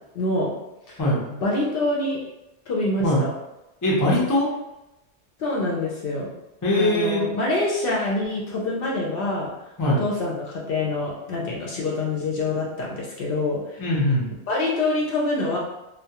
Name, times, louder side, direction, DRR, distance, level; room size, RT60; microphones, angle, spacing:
voice 1, 0.1-0.5 0.9-1.0 1.3-2.2 2.7-3.3 5.4-6.3 6.7-9.5 10.0-13.8 14.5-15.6, left 2 dB, 65° left, -3 dB, 0.7 m, -26 dB
voice 2, 3.8-4.5 6.6-7.2 9.8-10.0 13.8-14.3, left 1 dB, 30° left, -4 dB, 0.4 m, -21 dB
2.2 x 2.1 x 2.8 m, 0.95 s
omnidirectional pair, 1.2 m